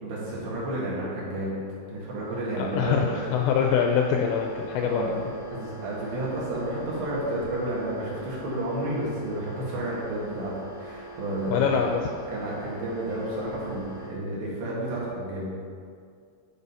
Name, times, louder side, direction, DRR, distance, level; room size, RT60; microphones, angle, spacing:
voice 1, 0.0-1.6 1.9-3.2 4.8-5.1 5.5-11.8 12.3-15.5, right 1 dB, 65° right, -7 dB, 3.7 m, -31 dB
sound 1, 1.9-14.1, right 2 dB, 35° left, 0.8 m, -43 dB
voice 2, 2.6-5.2 11.5-12.1, left 7 dB, 85° left, 2 dB, 2.6 m, -24 dB
11.5 x 4.2 x 5.4 m, 2.3 s
omnidirectional pair, 5.5 m